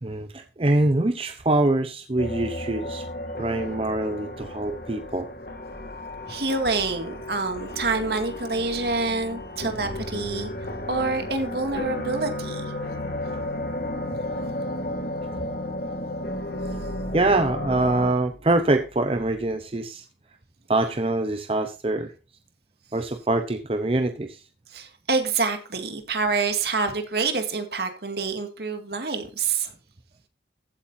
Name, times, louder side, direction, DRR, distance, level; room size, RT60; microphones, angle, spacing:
voice 1, 0.0-3.1 3.4-5.3 17.1-20.1 20.7-22.1 22.9-24.4, right 2 dB, 30° right, 0.7 m, -24 dB
sound 1, 2.2-18.1, left 1 dB, 55° left, 2.5 m, -33 dB
voice 2, 6.3-10.5 10.9-12.6 24.7-29.7, right 4 dB, 65° right, 2.2 m, -27 dB
15.0 x 8.7 x 2.7 m
head